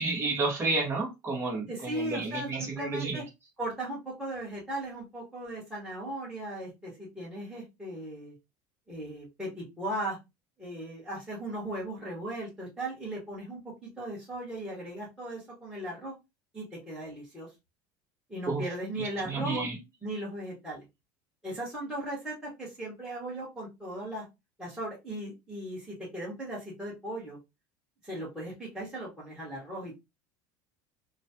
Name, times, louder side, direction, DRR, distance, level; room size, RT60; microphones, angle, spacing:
voice 1, 0.0-3.2 18.5-18.6 19.2-19.8, right 3 dB, 25° right, 1.3 m, -31 dB
voice 2, 1.7-3.2 3.6-8.3 8.9-10.2 10.6-16.1 16.5-17.5 18.3-19.6 20.0-20.8 21.4-24.2 24.6-27.4 28.0-29.9, right 1 dB, 5° right, 1.5 m, -37 dB
3.1 x 2.3 x 2.8 m
supercardioid pair, 130°, 10 cm